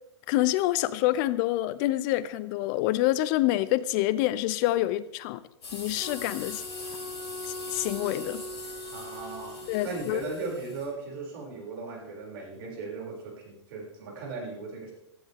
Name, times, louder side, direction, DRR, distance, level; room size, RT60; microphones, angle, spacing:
voice 1, 0.3-5.4 5.7-6.6 7.4-8.4 9.7-10.2, left 15 dB, 45° left, 17 dB, 0.6 m, -27 dB
sound 1, 5.6-10.9, left 3 dB, 70° left, 5.7 m, -42 dB
Wind instrument woodwind instrument, 5.9-10.2, left 1 dB, 35° right, 2.7 m, -41 dB
voice 2, 8.9-14.9, right 3 dB, 55° right, -1 dB, 6.4 m, -37 dB
15.5 x 14.5 x 3.6 m, 0.79 s
figure-of-eight pair, 105°, 14 cm